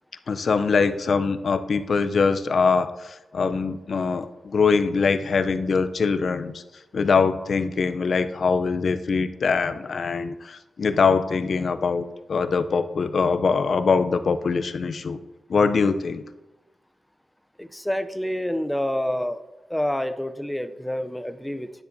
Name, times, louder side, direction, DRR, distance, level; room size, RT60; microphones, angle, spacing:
voice 1, 0.3-6.6 6.9-15.2 15.5-16.2, left 5 dB, 60° left, 10 dB, 0.5 m, -23 dB
voice 2, 17.6-19.4 19.7-21.8, left 1 dB, 5° left, 10 dB, 0.4 m, -28 dB
10.5 x 9.6 x 2.6 m, 1.1 s
wide cardioid pair, 135°, 0 cm